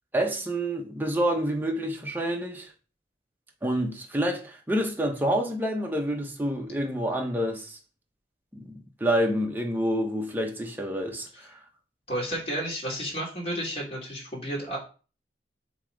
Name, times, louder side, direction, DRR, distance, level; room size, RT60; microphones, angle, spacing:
voice 1, 0.1-2.7 3.6-7.8 8.5-11.6, equal, 10° right, 1.0 m, -28 dB
voice 2, 12.1-14.8, right 1 dB, 35° left, 2.8 m, -32 dB
7.2 x 3.1 x 5.0 m
head